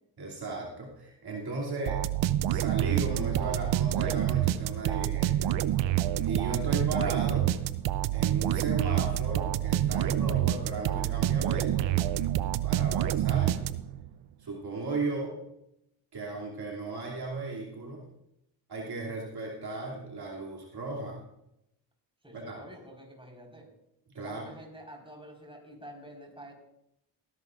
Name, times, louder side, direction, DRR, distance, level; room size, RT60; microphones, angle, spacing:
voice 1, 0.2-2.0 2.5-5.5 6.3-7.5 8.1-12.0 12.6-13.6 14.4-15.4 16.1-18.1 18.7-21.2 22.3-22.6 24.1-24.4, right 3 dB, 55° right, -2 dB, 2.8 m, -35 dB
sound 1, 1.9-14.1, right 12 dB, 70° right, 0.7 m, -27 dB
voice 2, 22.2-23.7 24.2-26.5, equal, 10° right, 0 dB, 4.6 m, -48 dB
18.5 x 11.5 x 2.5 m, 0.81 s
supercardioid pair, 60°, 46 cm